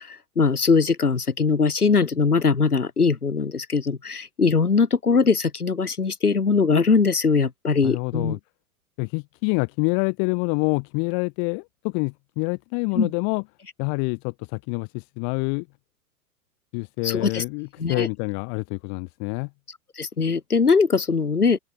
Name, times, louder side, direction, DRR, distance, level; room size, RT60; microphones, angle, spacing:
voice 1, 0.0-8.4 13.0-13.1 17.0-17.4 17.8-18.1 19.7-21.6, left 5 dB, 80° left, 2.5 m, -21 dB
voice 2, 7.8-8.4 9.0-13.4 13.8-15.7 16.7-19.5, left 40 dB or more, 40° left, 6.7 m, -27 dB
figure-of-eight pair, 105°, 45 cm